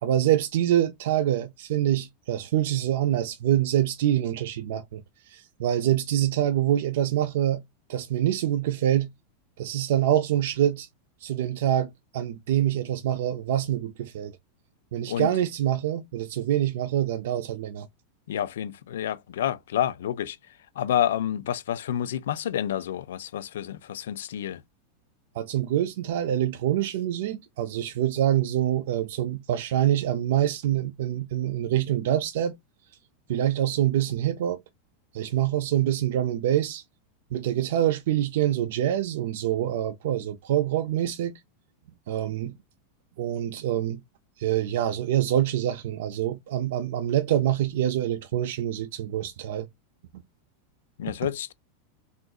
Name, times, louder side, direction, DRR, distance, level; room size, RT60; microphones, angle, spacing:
voice 1, 0.0-7.6 7.9-9.1 9.6-10.9 11.2-14.3 14.9-17.9 25.3-32.5 33.3-34.6 35.1-36.8 37.3-41.3 42.1-42.5 43.2-44.0 44.4-49.7, right 11 dB, 55° right, 0.3 m, -25 dB
voice 2, 18.3-20.4 20.8-24.6 51.0-51.5, left 10 dB, 80° left, 0.4 m, -29 dB
3.6 x 2.4 x 2.3 m
supercardioid pair, 180°, 0 cm